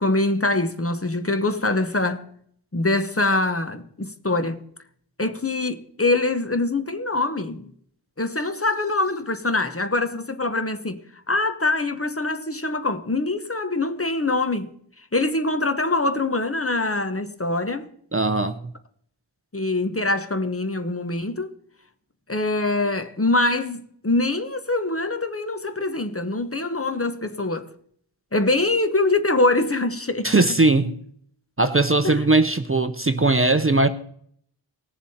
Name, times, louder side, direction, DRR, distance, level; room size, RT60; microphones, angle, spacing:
voice 1, 0.0-2.3 2.7-4.6 5.2-7.7 8.2-11.0 11.3-14.7 15.1-17.9 19.5-21.5 22.3-27.7 28.3-30.4 32.0-32.2, left 2 dB, 30° left, 1.0 m, -24 dB
voice 2, 18.1-18.6 30.2-30.9 31.6-33.9, right 2 dB, 30° right, 0.6 m, -19 dB
18.5 x 7.1 x 4.2 m
wide cardioid pair, 50°, 45 cm